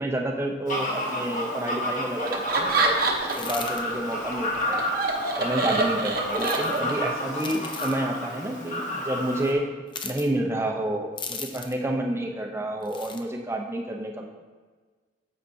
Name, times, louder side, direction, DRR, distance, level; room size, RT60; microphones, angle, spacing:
voice 1, 0.0-3.0 3.4-4.8 5.4-9.7 10.0-14.3, right 1 dB, 15° right, 1 dB, 0.7 m, -29 dB
Fowl, 0.7-9.5, left 1 dB, 40° left, 1.3 m, -31 dB
Laughter, 2.3-3.6 3.9-7.1, right 3 dB, 50° right, 0.9 m, -26 dB
sound 1, 3.2-3.8 6.3-6.8 7.4-8.0 9.9-10.3 11.2-11.8 12.8-13.2, left 5 dB, 25° left, 0.5 m, -37 dB
9.8 x 7.5 x 2.8 m, 1.4 s
head